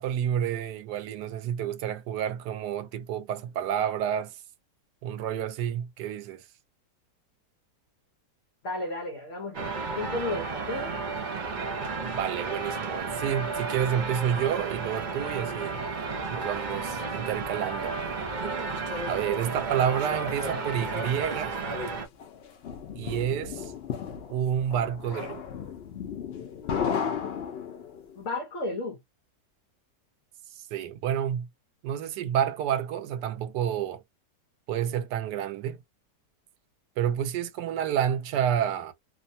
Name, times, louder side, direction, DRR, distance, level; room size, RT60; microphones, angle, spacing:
voice 1, 0.0-4.4 5.0-6.4 12.1-15.8 16.3-18.0 19.1-21.6 23.0-23.7 24.3-25.4 30.7-31.5 31.8-34.0 34.7-35.8 37.0-38.9, right 9 dB, 80° right, 1.2 m, -29 dB
voice 2, 8.6-11.0 20.5-20.7 28.2-29.0, left 2 dB, 55° left, 1.0 m, -33 dB
sound 1, 9.5-22.1, right 4 dB, 50° right, 0.5 m, -32 dB
sound 2, 22.2-28.1, left 7 dB, 75° left, 0.5 m, -34 dB
2.9 x 2.1 x 2.6 m
omnidirectional pair, 1.8 m